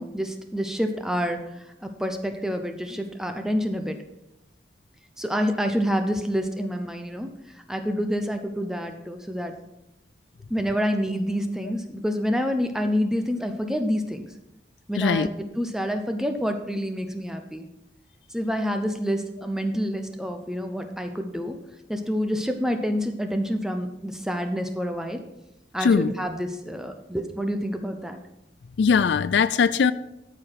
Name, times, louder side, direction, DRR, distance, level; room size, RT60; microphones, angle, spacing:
voice 1, 0.0-1.4 1.8-4.0 5.2-7.3 7.7-9.5 10.5-14.3 14.9-17.7 18.3-21.5 21.9-25.2 25.7-28.2, equal, 5° right, 0.7 m, -27 dB
voice 2, 15.0-15.3 25.8-26.1 28.8-29.9, left 6 dB, 85° left, 0.4 m, -20 dB
13.0 x 4.9 x 5.7 m
head